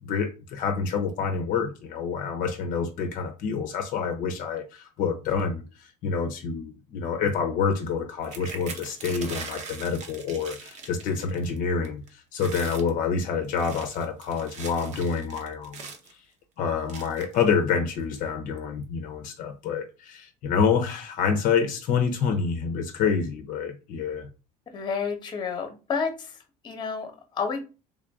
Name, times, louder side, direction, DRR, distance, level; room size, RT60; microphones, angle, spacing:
voice 1, 0.0-15.8 16.6-24.3, left 6 dB, 60° left, 0.6 m, -27 dB
sound 1, 8.2-11.6 11.8-12.1 12.3-12.9 13.4-16.1 16.9-17.4 18.1-18.2 18.6-18.8, right 4 dB, 50° right, 0.8 m, -41 dB
voice 2, 24.7-26.4 26.6-27.6, left 5 dB, 30° left, 0.9 m, -30 dB
3.5 x 2.5 x 3.4 m
cardioid pair, 130°, 15 cm